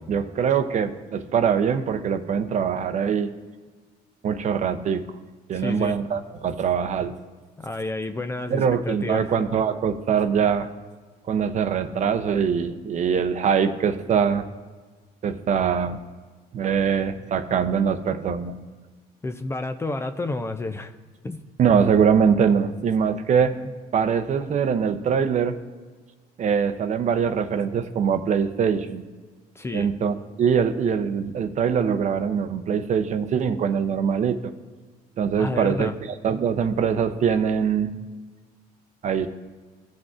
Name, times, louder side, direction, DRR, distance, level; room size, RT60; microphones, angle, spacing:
voice 1, 0.1-3.3 4.2-5.0 5.5-7.2 8.5-10.7 11.3-14.5 15.2-16.0 16.5-18.6 21.6-23.5 23.9-25.6 26.4-29.0 29.7-34.4 35.2-35.9 36.2-37.9 39.0-39.3, right 7 dB, 45° right, 9 dB, 0.6 m, -23 dB
voice 2, 5.5-6.0 7.6-9.3 19.2-20.9 21.2-21.4 29.6-29.9 35.4-36.0, left 2 dB, 15° left, 8 dB, 0.4 m, -30 dB
17.5 x 6.0 x 2.5 m, 1.4 s
cardioid pair, 110°, 17 cm